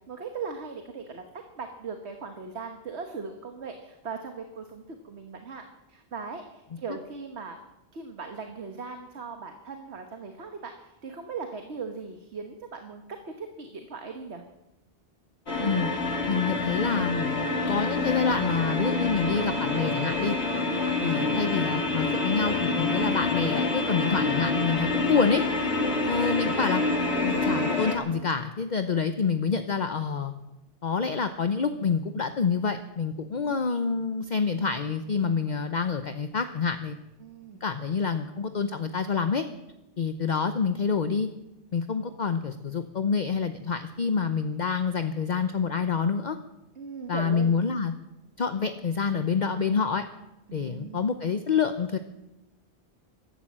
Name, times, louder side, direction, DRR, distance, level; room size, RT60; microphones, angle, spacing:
voice 1, 0.1-1.2 1.6-5.6 5.9-7.6 7.9-10.7 11.0-14.4 25.0-25.3 25.8-26.1 33.3-33.5 37.2-37.6 42.0-42.2 46.7-47.6 50.5-51.1, right 5 dB, 75° right, 5 dB, 1.6 m, -39 dB
sound 1, 15.5-28.0, left 2 dB, 75° left, 2.6 m, -27 dB
voice 2, 16.3-20.4 21.0-25.4 26.1-26.8 27.2-30.3 30.8-37.0 37.6-39.5 40.0-41.3 41.7-46.4 47.1-47.9 48.4-50.0 50.5-52.0, left 5 dB, 45° left, 9 dB, 0.8 m, -27 dB
15.0 x 12.5 x 7.5 m, 0.95 s
omnidirectional pair, 1.1 m